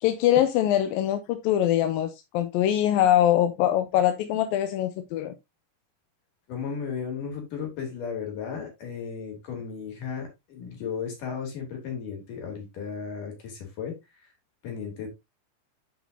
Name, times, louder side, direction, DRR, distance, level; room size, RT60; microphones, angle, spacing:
voice 1, 0.0-5.3, left 11 dB, 75° left, 2.3 m, -23 dB
voice 2, 6.5-14.3 14.6-15.1, left 6 dB, 55° left, 4.5 m, -35 dB
8.2 x 7.9 x 2.7 m
omnidirectional pair, 4.6 m